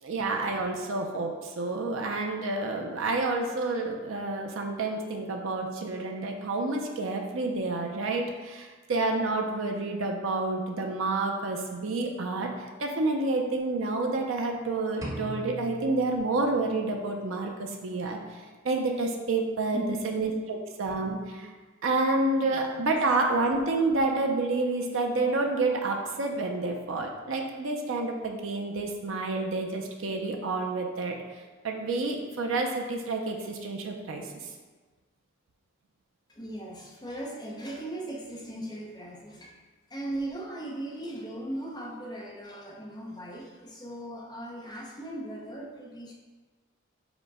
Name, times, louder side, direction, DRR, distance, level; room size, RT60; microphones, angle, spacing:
voice 1, 0.0-12.5 12.8-18.2 18.6-21.5 21.8-31.2 31.6-34.2, right 2 dB, 75° right, 2 dB, 0.5 m, -29 dB
sound 1, 15.0-17.0, right 1 dB, 15° right, 0.5 m, -40 dB
voice 2, 19.7-20.2 22.5-22.6 36.3-39.6 39.9-46.1, right 1 dB, 20° left, -2 dB, 0.7 m, -38 dB
5.0 x 2.1 x 4.7 m, 1.3 s
head